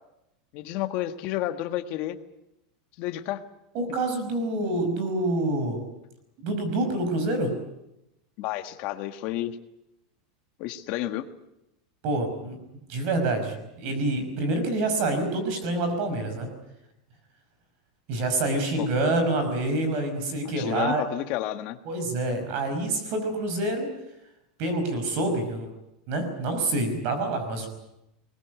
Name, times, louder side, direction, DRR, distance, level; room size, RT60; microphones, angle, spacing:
voice 1, 0.5-2.2 3.0-3.4 8.4-9.6 10.6-11.2 18.8-18.9 20.5-21.8, left 14 dB, 40° left, 8 dB, 1.6 m, -30 dB
voice 2, 3.7-5.9 6.4-7.5 12.0-12.6 12.9-16.5 18.1-21.0 21.9-23.9 24.6-25.7 26.1-27.7, right 2 dB, 40° right, 8 dB, 5.3 m, -27 dB
22.5 x 20.5 x 9.3 m, 0.87 s
supercardioid pair, 180°, 4 cm